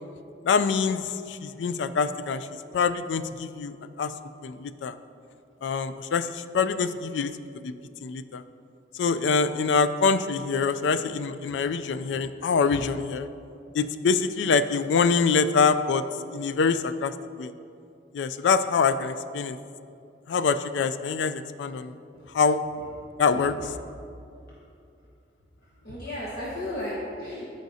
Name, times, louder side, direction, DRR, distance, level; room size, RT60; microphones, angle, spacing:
voice 1, 0.4-2.5 2.7-4.1 4.4-5.0 5.6-7.3 7.6-7.7 8.0-8.4 8.9-13.3 13.7-16.0 16.3-17.5 18.1-19.6 20.3-21.9 22.3-22.6 23.2-23.5, left 5 dB, 80° left, 12 dB, 0.4 m, -25 dB
voice 2, 25.6-27.5, left 1 dB, 55° left, -6 dB, 1.1 m, -35 dB
13.5 x 5.2 x 2.7 m, 2.5 s
head